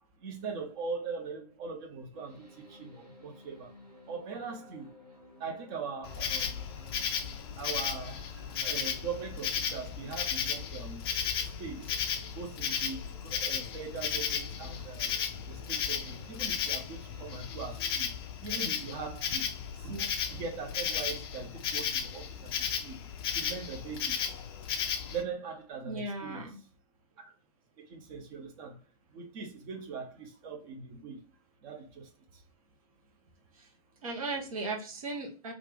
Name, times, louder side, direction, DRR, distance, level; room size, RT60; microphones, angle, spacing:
voice 1, 0.2-3.7 4.1-4.9 5.4-6.5 7.6-11.0 11.6-11.9 12.3-15.1 15.5-18.1 18.4-19.4 19.8-23.0 23.3-24.3 25.1-26.5 27.9-28.8 29.1-31.2 31.6-32.1, right 5 dB, 35° right, 0.8 m, -41 dB
sound 1, 2.1-18.1, equal, 85° right, 1.4 m, -55 dB
Insect, 6.0-25.2, left 7 dB, 40° left, 0.4 m, -34 dB
voice 2, 25.8-26.6 33.5-33.7 34.0-35.5, right 2 dB, 60° right, 1.1 m, -37 dB
3.2 x 2.5 x 3.3 m
figure-of-eight pair, 105°, 20 cm